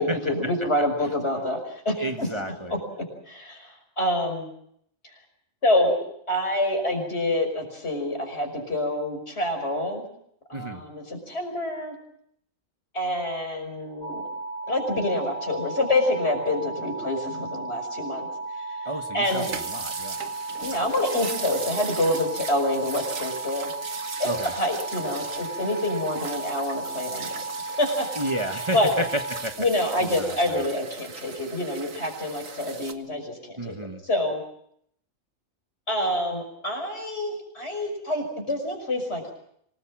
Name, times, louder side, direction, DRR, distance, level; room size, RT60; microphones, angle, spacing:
voice 1, 0.0-4.5 5.6-6.0 6.3-10.0 10.5-12.0 12.9-14.3 14.7-18.3 18.8-18.9 19.1-19.5 20.6-23.7 24.2-27.3 27.8-28.1 28.7-28.9 29.6-33.8 34.0-34.4 35.9-39.3, left 1 dB, 55° left, 4 dB, 6.1 m, -27 dB
voice 2, 2.0-2.8 10.5-10.8 18.8-20.2 24.2-24.5 28.2-29.5 30.0-30.6 33.6-34.0, right 1 dB, 20° right, 4 dB, 1.5 m, -31 dB
sound 1, 14.0-29.4, right 2 dB, 35° left, 3.4 m, -35 dB
sound 2, 19.2-32.9, right 5 dB, 85° right, 1.9 m, -38 dB
26.5 x 19.5 x 7.5 m, 0.71 s
omnidirectional pair, 1.3 m